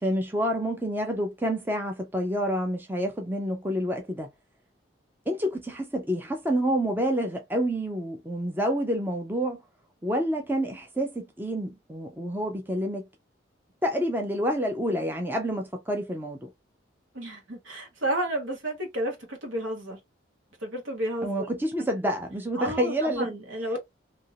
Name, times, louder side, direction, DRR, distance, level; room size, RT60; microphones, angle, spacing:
voice 1, 0.0-4.3 5.3-9.6 10.0-13.0 13.8-16.5 21.2-23.3, equal, 10° right, 0.5 m, -28 dB
voice 2, 17.1-20.0 20.6-21.5 22.6-23.8, right 1 dB, 80° right, 1.3 m, -31 dB
2.8 x 2.6 x 2.7 m
head